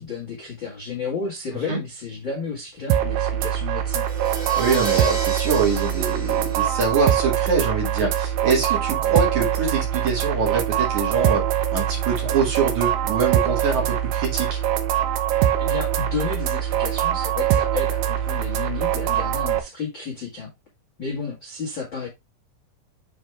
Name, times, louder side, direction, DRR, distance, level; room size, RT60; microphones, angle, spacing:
voice 1, 0.0-4.1 15.6-20.5 21.0-22.1, left 5 dB, 55° left, 1.3 m, -32 dB
sound 1, 2.9-19.6, right 11 dB, 85° right, 2.0 m, -23 dB
Crash cymbal, 3.9-7.7, right 2 dB, 10° right, 1.9 m, -34 dB
voice 2, 4.6-11.5 11.7-14.6, right 5 dB, 50° right, 3.1 m, -24 dB
7.1 x 4.7 x 3.3 m
omnidirectional pair, 5.2 m